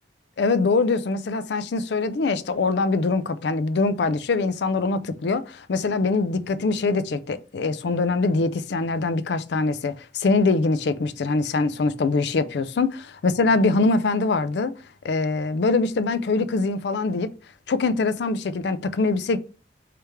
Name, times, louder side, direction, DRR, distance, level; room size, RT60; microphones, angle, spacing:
voice 1, 0.4-14.7 15.0-17.3 17.7-19.4, left 3 dB, 65° left, 0.4 m, -23 dB
3.4 x 3.3 x 4.4 m
head